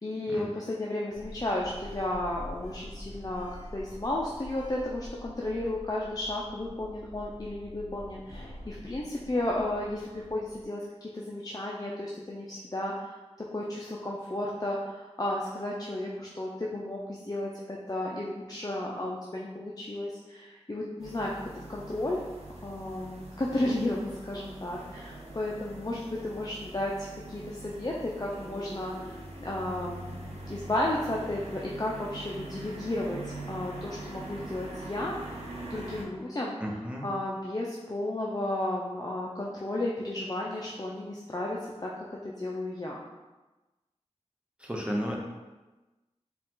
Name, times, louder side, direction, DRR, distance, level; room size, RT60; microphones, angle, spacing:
voice 1, 0.0-13.2 13.5-22.2 22.6-35.2 35.7-36.6 37.0-41.9 42.2-43.0, left 1 dB, 35° left, -4 dB, 0.5 m, -33 dB
Sliding door, 1.1-10.7, equal, 75° left, 0.9 m, -46 dB
sound 1, 21.0-36.0, right 2 dB, 65° right, 0.9 m, -43 dB
voice 2, 36.6-37.1 44.6-45.2, equal, 10° right, -2 dB, 0.8 m, -33 dB
4.7 x 2.4 x 3.7 m, 1.1 s
wide cardioid pair, 50°, 12 cm